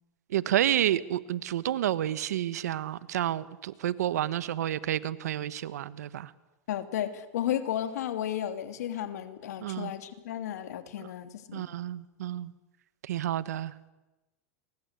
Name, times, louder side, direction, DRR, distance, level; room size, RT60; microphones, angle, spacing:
voice 1, 0.3-6.3 9.6-9.9 11.5-12.5 13.1-13.9, right 12 dB, 85° right, 16 dB, 1.4 m, -30 dB
voice 2, 6.7-11.7, left 11 dB, 80° left, 9 dB, 2.9 m, -33 dB
30.0 x 24.0 x 8.3 m, 1.1 s
supercardioid pair, 120°, 9 cm